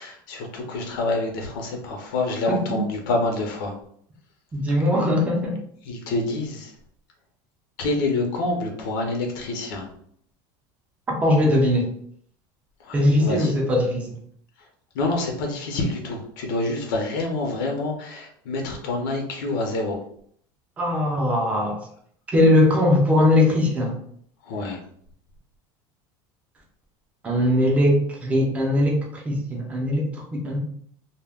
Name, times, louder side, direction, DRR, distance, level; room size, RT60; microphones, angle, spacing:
voice 1, 0.0-3.7 5.8-6.7 7.8-9.9 12.8-13.5 14.9-20.0 24.4-24.8, left 2 dB, 80° left, 2 dB, 0.6 m, -27 dB
voice 2, 2.5-2.8 4.5-5.5 11.2-11.9 12.9-14.2 20.8-21.8 22.3-24.0 27.2-30.6, left 1 dB, 15° right, 0 dB, 0.5 m, -20 dB
2.2 x 2.1 x 3.4 m, 0.64 s
cardioid pair, 170°, 11 cm